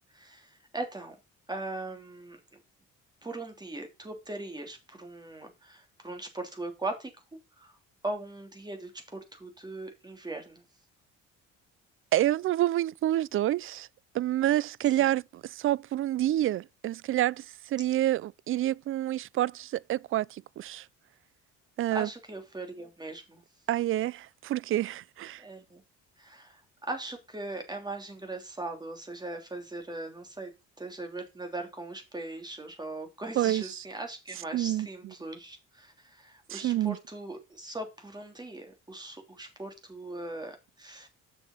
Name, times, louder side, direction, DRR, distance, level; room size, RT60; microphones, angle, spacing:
voice 1, 0.1-1.2 1.5-2.4 3.2-7.1 7.6-7.7 8.0-10.6 14.9-15.1 21.9-23.4 25.4-25.8 26.2-30.5 30.8-41.1, right 2 dB, 15° right, 3.1 m, -39 dB
voice 2, 12.1-13.9 14.1-20.9 21.8-22.1 23.7-25.4 33.4-33.8 34.5-34.9 36.5-37.0, right 13 dB, 45° right, 0.4 m, -28 dB
7.1 x 6.6 x 5.7 m
cardioid pair, 115°, 30 cm